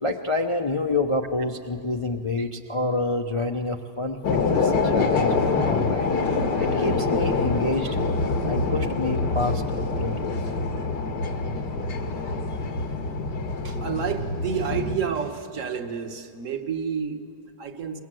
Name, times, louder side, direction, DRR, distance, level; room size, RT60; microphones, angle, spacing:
voice 1, 0.0-5.3 5.7-6.1 6.6-8.0 8.4-10.4 12.7-12.8, left 2 dB, 35° left, 4 dB, 0.4 m, -28 dB
sound 1, 4.2-15.0, left 3 dB, 85° left, 2.1 m, -25 dB
voice 2, 13.6-18.0, right 7 dB, 50° right, 6 dB, 1.6 m, -30 dB
23.5 x 21.5 x 7.7 m, 2.3 s
omnidirectional pair, 1.8 m